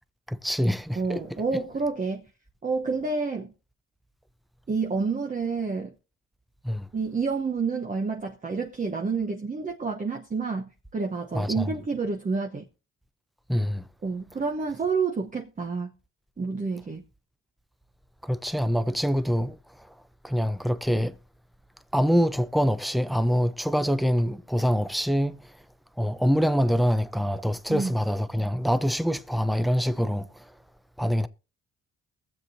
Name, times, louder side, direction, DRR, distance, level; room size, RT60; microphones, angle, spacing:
voice 1, 0.3-1.2 6.6-6.9 11.3-11.7 13.5-13.8 18.2-19.9 20.2-21.2 21.9-25.4 26.0-30.5 31.0-31.3, equal, ahead, 0.6 m, -25 dB
voice 2, 1.0-2.3 2.6-3.5 4.7-5.9 6.9-12.7 14.0-15.9 16.4-17.0 27.7-28.0, right 4 dB, 25° right, 1.0 m, -29 dB
21.5 x 7.6 x 2.7 m
cardioid pair, 90°, 30 cm